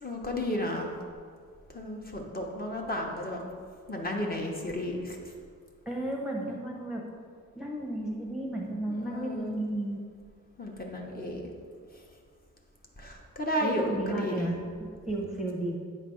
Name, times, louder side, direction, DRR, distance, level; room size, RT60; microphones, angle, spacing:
voice 1, 0.0-0.9 1.7-3.4 3.9-5.2 8.9-9.5 10.6-11.4 13.0-14.5, left 1 dB, 30° left, -1 dB, 0.9 m, -33 dB
voice 2, 5.9-7.1 7.5-10.0 13.6-15.8, right 1 dB, ahead, -2 dB, 0.8 m, -33 dB
8.9 x 3.3 x 6.3 m, 2.1 s
wide cardioid pair, 145°, 32 cm